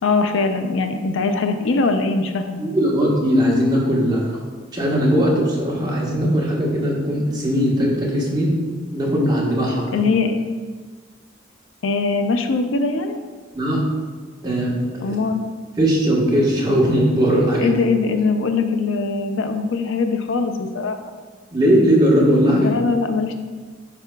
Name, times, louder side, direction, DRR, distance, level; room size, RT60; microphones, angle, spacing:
voice 1, 0.0-2.6 9.9-10.4 11.8-13.2 15.0-15.4 17.6-21.0 22.5-23.3, left 4 dB, 75° left, 7 dB, 0.5 m, -21 dB
voice 2, 2.6-4.4 4.7-8.6 8.9-10.0 13.5-13.8 14.4-14.8 15.0-15.1 15.8-17.7 21.5-22.7, equal, 20° right, -4 dB, 1.2 m, -19 dB
9.1 x 4.8 x 2.3 m, 1.4 s
head